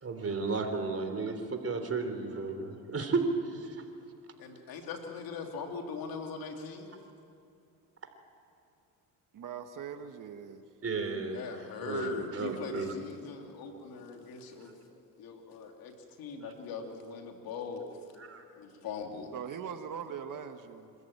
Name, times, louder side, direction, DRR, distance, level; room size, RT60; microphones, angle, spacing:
voice 1, 0.0-3.8 10.8-11.4 11.8-12.9 18.2-18.4, right 4 dB, 40° right, 6 dB, 3.4 m, -33 dB
voice 2, 4.4-6.9 11.3-14.7 15.2-17.8 18.5-19.3, left 4 dB, 75° left, 3 dB, 3.0 m, -40 dB
voice 3, 9.3-10.7 19.3-20.9, right 7 dB, 60° right, 8 dB, 1.6 m, -41 dB
26.0 x 14.0 x 9.0 m, 2.5 s
supercardioid pair, 70°, 36 cm